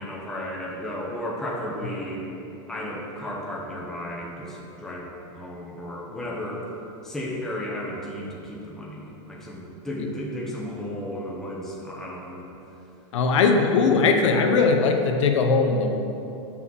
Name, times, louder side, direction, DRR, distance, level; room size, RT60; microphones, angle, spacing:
voice 1, 0.0-2.2 2.7-6.7 7.0-12.5, left 1 dB, 5° left, -4 dB, 0.6 m, -34 dB
voice 2, 13.1-16.0, left 4 dB, 80° left, 4 dB, 0.7 m, -20 dB
5.8 x 3.8 x 6.1 m, 2.9 s
supercardioid pair, 180°, 15 cm